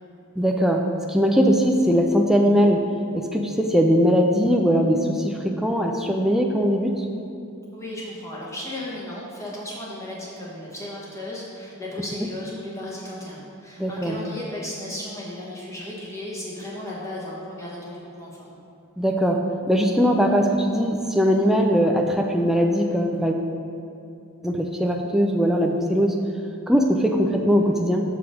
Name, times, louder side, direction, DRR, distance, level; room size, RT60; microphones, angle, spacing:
voice 1, 0.4-2.8 3.1-7.1 13.8-14.2 19.0-23.4 24.4-26.2 26.7-28.0, equal, ahead, 2 dB, 0.3 m, -20 dB
voice 2, 7.7-18.5, left 1 dB, 15° left, -5 dB, 1.2 m, -35 dB
6.8 x 4.9 x 5.0 m, 2.7 s
head